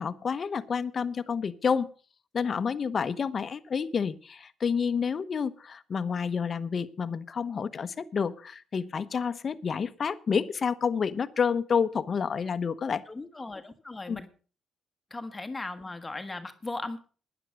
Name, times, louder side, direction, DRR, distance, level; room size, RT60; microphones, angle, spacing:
voice 1, 0.0-1.9 2.3-13.0 14.1-14.2, left 6 dB, 45° left, 14 dB, 1.0 m, -29 dB
voice 2, 13.1-14.3 15.1-17.1, left 2 dB, 20° left, 8 dB, 1.3 m, -37 dB
12.0 x 10.0 x 6.3 m, 0.39 s
cardioid pair, 90°, 0 cm